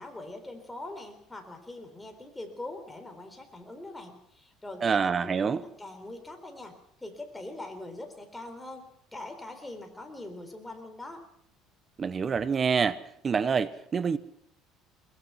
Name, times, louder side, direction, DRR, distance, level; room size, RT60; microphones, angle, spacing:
voice 1, 0.0-11.3, left 2 dB, 10° left, 3.9 m, -42 dB
voice 2, 4.8-5.6 12.0-13.0 13.2-14.2, right 6 dB, 30° right, 0.9 m, -26 dB
22.5 x 20.5 x 5.7 m
cardioid pair, 125°, 0 cm